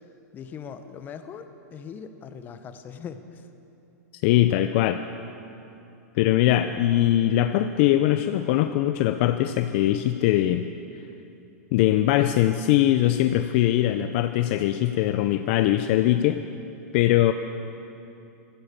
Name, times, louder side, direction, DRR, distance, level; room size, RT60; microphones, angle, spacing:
voice 1, 0.3-3.4, left 7 dB, 20° left, 9 dB, 0.9 m, -40 dB
voice 2, 4.2-5.0 6.2-10.7 11.7-16.4 16.9-17.3, left 13 dB, 45° left, 9 dB, 0.5 m, -21 dB
15.0 x 14.5 x 6.7 m, 2.8 s
hypercardioid pair, 145°, 9 cm